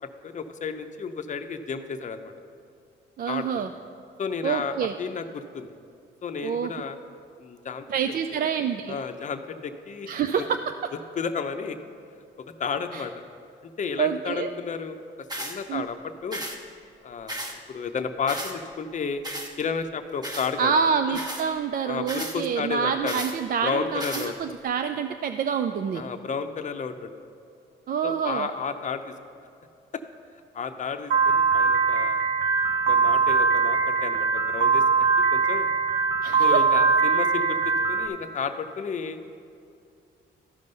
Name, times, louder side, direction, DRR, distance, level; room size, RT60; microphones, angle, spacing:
voice 1, 0.0-2.3 3.3-3.6 4.2-5.7 6.2-7.0 7.4-7.9 8.9-10.1 11.2-11.8 12.6-13.1 13.8-16.4 17.0-19.2 19.6-20.7 21.1-21.2 21.9-23.2 23.6-24.4 25.9-27.1 28.0-29.1 29.9-30.0 30.5-32.2 32.9-34.8 35.3-35.7 36.4-39.2, left 5 dB, 40° left, 7 dB, 0.7 m, -32 dB
voice 2, 3.2-3.7 4.4-4.9 6.4-6.7 7.9-9.0 10.1-10.6 12.9-13.0 14.0-14.5 15.7-15.9 20.6-26.0 27.9-28.5 36.2-36.6, right 7 dB, 45° right, 7 dB, 0.4 m, -27 dB
sound 1, 15.3-15.6 16.3-16.6 17.3-17.6 18.3-18.5 19.2-19.5 20.2-20.5 21.1-21.4 22.1-22.4 23.1-23.3 24.0-24.3, right 1 dB, 20° right, 1.2 m, -34 dB
Piano, 31.1-38.1, right 5 dB, 75° right, 1.1 m, -22 dB
13.0 x 5.3 x 5.4 m, 2.5 s
cardioid pair, 90°, 20 cm